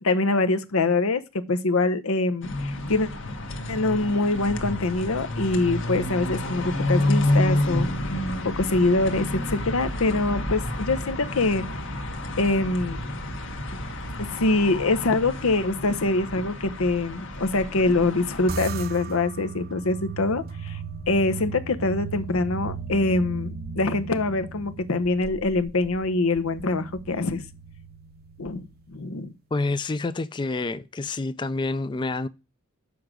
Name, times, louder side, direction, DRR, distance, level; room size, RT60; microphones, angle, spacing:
voice 1, 0.0-3.1 3.7-7.9 8.4-11.6 12.4-13.0 14.2-20.8 21.1-27.4 28.4-29.3, left 2 dB, 90° left, 0.8 m, -24 dB
sound 1, 2.4-18.5, left 1 dB, 65° left, 1.3 m, -29 dB
sound 2, 18.5-29.1, right 4 dB, 45° right, 0.6 m, -37 dB
voice 2, 29.5-32.3, left 3 dB, 20° left, 0.3 m, -28 dB
7.0 x 4.9 x 6.1 m
head